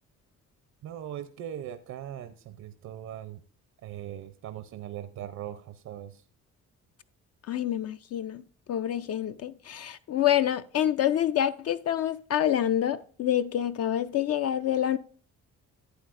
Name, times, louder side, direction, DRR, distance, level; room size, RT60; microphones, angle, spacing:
voice 1, 0.8-3.4 3.8-6.2, right 11 dB, 65° right, 0.6 m, -40 dB
voice 2, 7.5-8.4 8.7-15.0, left 11 dB, 55° left, 0.4 m, -27 dB
11.5 x 8.2 x 2.5 m
cardioid pair, 90°, 30 cm